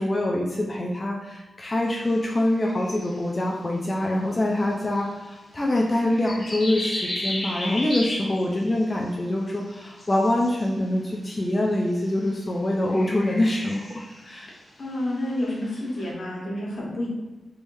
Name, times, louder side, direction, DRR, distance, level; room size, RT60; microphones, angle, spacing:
voice 1, 0.0-14.5, left 1 dB, 25° left, -1 dB, 0.4 m, -25 dB
sound 1, 1.8-3.5 4.6-5.1 5.9-9.1 9.4-11.1 11.9-12.4 12.8-16.1, left 1 dB, 55° left, 1.3 m, -36 dB
voice 2, 14.8-17.1, left 1 dB, 70° left, -4 dB, 1.1 m, -30 dB
3.4 x 3.2 x 2.6 m, 1.2 s
wide cardioid pair, 115°, 0 cm